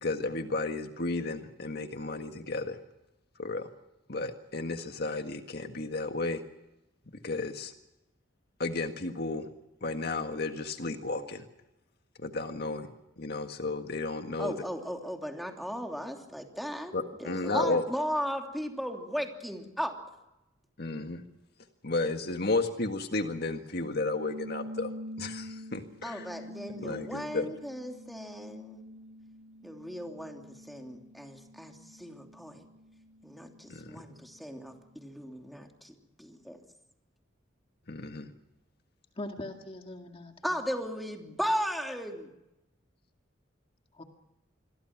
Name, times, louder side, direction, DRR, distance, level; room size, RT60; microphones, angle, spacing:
voice 1, 0.0-2.8 3.4-3.7 4.1-6.4 7.2-7.7 8.6-9.5 9.8-11.4 12.2-12.9 13.2-14.6 16.9-17.8 20.8-21.2 21.8-24.9 25.2-26.3 26.8-27.5 33.7-34.0 37.9-38.3, left 3 dB, 55° left, 6 dB, 1.7 m, -33 dB
voice 2, 14.4-16.9 17.2-19.9 26.0-28.8 29.6-32.6 33.2-36.6 40.4-42.3, equal, ahead, 2 dB, 3.0 m, -36 dB
sound 1, 23.9-34.8, equal, 90° right, 2.0 m, -46 dB
voice 3, 39.2-40.6 43.9-44.0, left 1 dB, 30° left, 4 dB, 2.1 m, -41 dB
27.5 x 22.0 x 6.0 m, 0.93 s
head